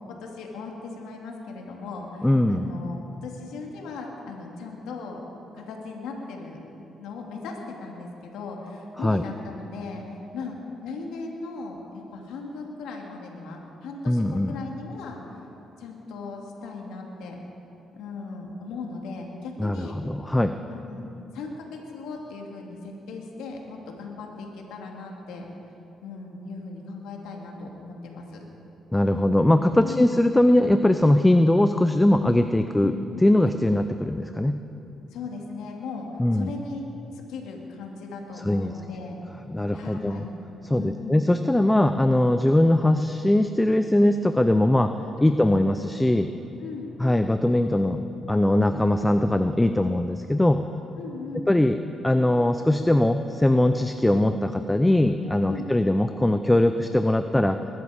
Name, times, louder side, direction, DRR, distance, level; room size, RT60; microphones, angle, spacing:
voice 1, 0.1-5.2 5.5-6.6 7.0-10.0 10.3-10.6 10.8-15.2 15.8-17.4 17.9-20.0 20.7-21.1 21.3-25.5 26.0-28.4 29.8-30.1 32.8-33.0 35.1-36.1 36.3-36.8 37.1-39.2 39.7-40.3 40.7-41.3 45.2-45.4 46.6-47.0 51.0-51.5 55.5-55.8, left 3 dB, 90° left, 0 dB, 2.2 m, -38 dB
voice 2, 2.2-2.7 9.0-9.2 14.1-14.6 19.6-20.5 28.9-32.9 33.2-34.6 36.2-36.5 38.4-38.7 39.5-40.2 40.6-44.9 45.2-46.3 47.0-48.0 48.3-50.6 51.5-51.8 52.0-57.6, left 1 dB, 10° left, 8 dB, 0.5 m, -21 dB
21.5 x 12.0 x 4.9 m, 2.9 s
cardioid pair, 90°, 0 cm